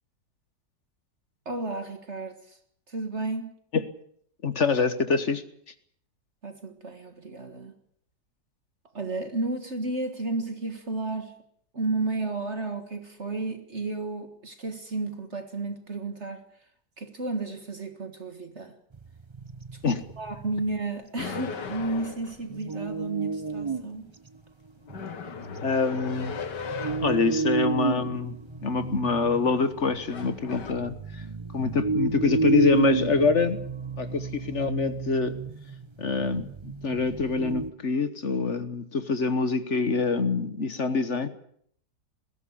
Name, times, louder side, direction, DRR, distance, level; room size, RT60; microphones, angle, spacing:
voice 1, 1.5-2.6 2.9-3.5 6.4-7.7 8.9-11.4 11.7-16.4 17.0-18.7 19.7-24.1, right 3 dB, 40° right, 2.0 m, -32 dB
voice 2, 4.4-5.4 19.8-20.0 25.6-26.3 27.0-28.4 28.6-31.2 31.5-33.6 34.0-35.4 36.0-41.3, left 4 dB, 45° left, 1.4 m, -25 dB
sound 1, 18.9-20.8 22.5-23.9 24.3-24.4 24.9-25.4 25.9-37.7, right 4 dB, 25° right, 0.7 m, -31 dB
sound 2, 21.2-22.4 24.9-27.2 29.3-29.7 30.1-30.7, left 5 dB, 90° left, 2.2 m, -37 dB
21.0 x 16.5 x 8.5 m
omnidirectional pair, 1.8 m